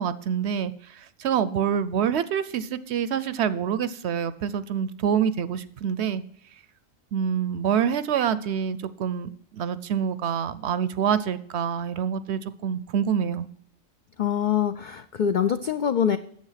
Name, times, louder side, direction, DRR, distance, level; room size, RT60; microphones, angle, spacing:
voice 1, 0.0-6.2 7.1-13.5, right 8 dB, 65° right, 15 dB, 0.8 m, -26 dB
voice 2, 14.2-16.2, left 8 dB, 75° left, 10 dB, 0.4 m, -24 dB
9.7 x 7.8 x 5.7 m, 0.64 s
omnidirectional pair, 1.4 m